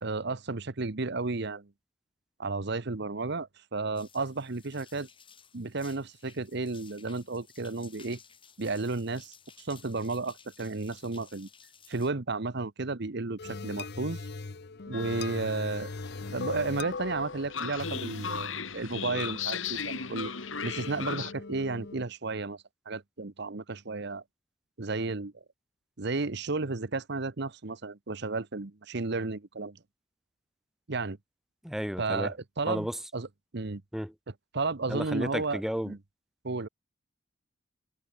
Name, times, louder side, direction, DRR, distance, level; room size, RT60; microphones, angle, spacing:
voice 1, 0.0-1.7 2.4-5.1 5.5-8.2 8.6-11.5 11.9-14.3 14.9-15.9 16.3-20.3 20.6-24.2 24.8-25.3 26.0-29.8 30.9-31.2 32.0-32.9 33.1-33.3 33.5-33.8 34.5-36.0 36.4-36.7, right 3 dB, 60° right, 1.1 m, -33 dB
sound 1, 4.0-12.1, left 7 dB, 25° left, 7.4 m, -56 dB
sound 2, 13.4-22.0, left 3 dB, 55° left, 0.8 m, -40 dB
Train, 14.9-21.3, left 6 dB, 85° left, 4.9 m, -37 dB
voice 2, 31.6-32.3 32.7-33.0 33.9-34.1 34.9-35.9, equal, ahead, 1.8 m, -32 dB
head